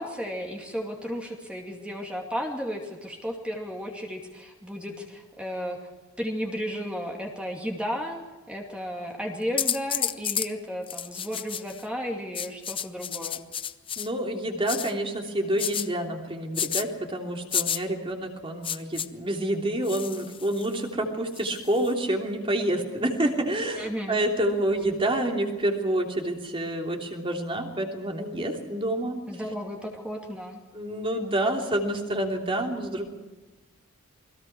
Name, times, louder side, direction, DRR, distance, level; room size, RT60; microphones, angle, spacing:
voice 1, 0.0-5.8 6.2-8.2 8.5-13.4 23.7-24.2 29.3-30.6, equal, 5° right, 1 dB, 2.5 m, -34 dB
sound 1, 9.6-10.5 10.9-11.8 12.3-14.1 14.7-14.9 15.6-15.9 16.5-16.8 17.5-17.8 18.6-19.1 19.8-20.7 21.4-21.9, left 9 dB, 25° left, 0.7 m, -30 dB
voice 2, 14.0-29.2 30.7-33.1, right 1 dB, 25° right, 2 dB, 3.1 m, -28 dB
29.0 x 21.5 x 4.8 m, 1.2 s
head